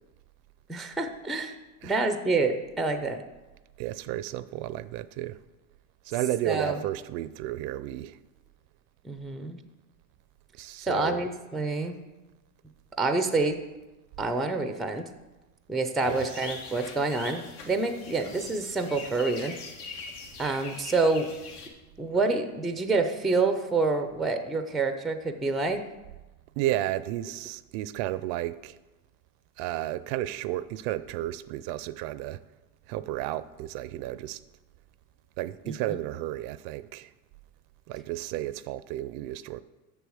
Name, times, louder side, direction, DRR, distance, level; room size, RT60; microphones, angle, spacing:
voice 1, 0.7-1.6 1.8-3.2 6.5-6.8 9.0-9.6 10.9-11.9 13.0-13.6 14.2-15.1 15.7-19.6 20.4-21.3 22.0-25.8 35.7-36.0, right 3 dB, ahead, 0.4 m, -27 dB
voice 2, 3.8-5.4 6.0-8.2 10.5-11.2 16.1-16.3 26.6-28.8 29.6-32.4 32.9-34.4 35.4-37.1 37.9-39.6, right 14 dB, 60° right, 0.5 m, -32 dB
sound 1, 16.0-21.7, left 4 dB, 80° left, 1.7 m, -43 dB
7.0 x 6.9 x 6.3 m
supercardioid pair, 125°, 44 cm